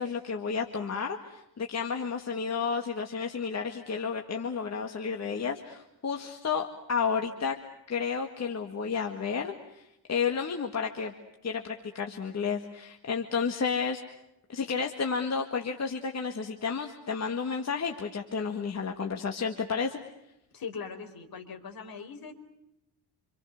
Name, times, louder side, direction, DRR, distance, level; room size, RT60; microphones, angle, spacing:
voice 1, 0.0-7.6 7.9-9.8 10.1-11.1 11.4-14.0 14.5-20.0, left 5 dB, 40° left, 3 dB, 1.9 m, -31 dB
voice 2, 20.5-22.3, left 6 dB, 60° left, 5 dB, 4.3 m, -40 dB
27.5 x 27.0 x 6.6 m, 0.86 s
wide cardioid pair, 145°, 41 cm